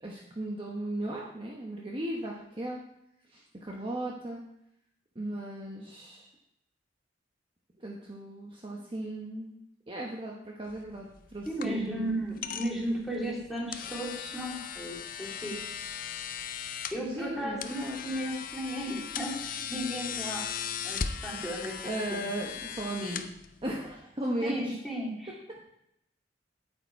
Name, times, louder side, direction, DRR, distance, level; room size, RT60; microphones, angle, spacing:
voice 1, 0.0-2.8 3.3-4.4 5.1-6.3 7.8-9.5 9.9-12.2 17.1-18.0 21.8-23.2 23.6-24.8, right 1 dB, 30° right, -2 dB, 1.0 m, -36 dB
sound 1, 10.7-23.9, left 7 dB, 50° left, 0.6 m, -38 dB
voice 2, 11.5-15.7 16.9-20.4 20.8-21.7 22.1-22.3 24.4-25.3, equal, ahead, -4 dB, 2.7 m, -35 dB
8.9 x 8.8 x 4.6 m, 0.79 s
head